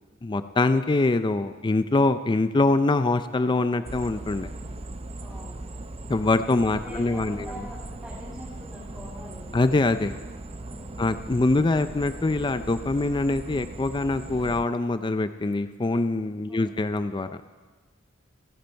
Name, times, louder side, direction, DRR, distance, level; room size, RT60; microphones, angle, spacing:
voice 1, 0.2-4.5 6.1-7.5 9.5-10.2 11.0-17.3, left 2 dB, 25° left, 11 dB, 0.4 m, -24 dB
sound 1, 3.8-14.6, right 2 dB, 30° right, 0.6 m, -39 dB
voice 2, 5.2-5.6 6.6-9.7 10.6-11.1 16.5-16.8, equal, ahead, -8 dB, 3.2 m, -43 dB
29.0 x 10.5 x 4.5 m, 1.4 s
head